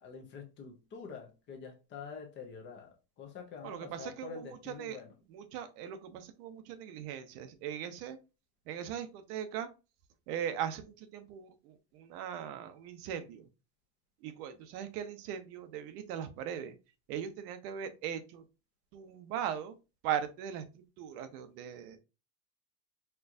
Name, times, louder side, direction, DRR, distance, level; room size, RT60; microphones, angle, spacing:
voice 1, 0.0-5.2, left 6 dB, 25° left, 0.5 m, -46 dB
voice 2, 3.6-5.0 5.3-8.2 8.7-9.7 10.3-13.5 14.2-16.7 17.1-18.4 18.9-19.8 20.0-22.0, right 9 dB, 80° right, 0.7 m, -39 dB
4.3 x 2.3 x 2.5 m
cardioid pair, 165°, 46 cm